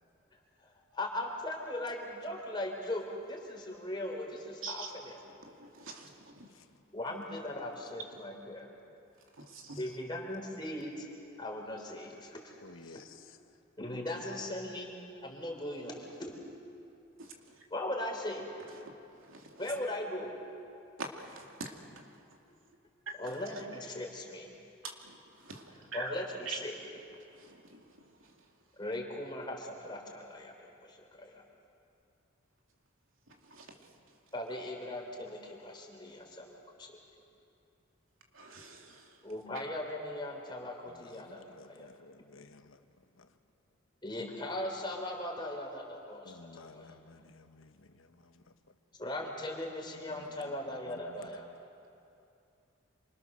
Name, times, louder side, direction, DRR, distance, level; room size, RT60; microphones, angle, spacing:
voice 1, 0.9-5.2 6.9-8.7 9.8-11.1 11.4-12.5 12.9-13.0 13.8-16.3 17.7-18.7 19.6-20.3 23.2-24.5 25.9-26.8 28.8-31.4 34.3-37.0 39.2-41.9 44.0-46.9 49.0-51.5, left 1 dB, 20° left, 3.8 m, -39 dB
voice 2, 5.6-6.5 9.4-9.8 17.2-17.3 18.8-18.9 19.3-19.6 21.0-21.4 24.8-26.1 26.5-26.6 27.4-27.8 33.5-33.7 38.3-39.1, right 4 dB, 75° right, 2.8 m, -44 dB
voice 3, 12.6-13.4 40.9-42.8 43.2-43.3 46.2-48.1 50.1-50.6 50.9-51.3, left 3 dB, 70° left, 1.1 m, -54 dB
27.5 x 26.0 x 6.8 m
head